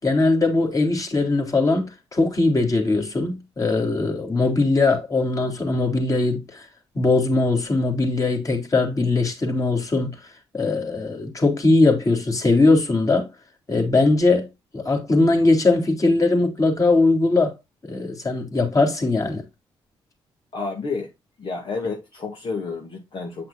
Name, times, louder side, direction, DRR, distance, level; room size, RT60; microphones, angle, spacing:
voice 1, 0.0-6.7 7.0-10.2 10.5-13.3 13.7-14.5 14.7-17.6 17.8-19.4, left 3 dB, 35° left, 3.5 m, -20 dB
voice 2, 20.5-21.1 21.4-23.5, left 4 dB, 55° left, 2.2 m, -30 dB
9.0 x 5.8 x 2.4 m
supercardioid pair, 60°, 10 cm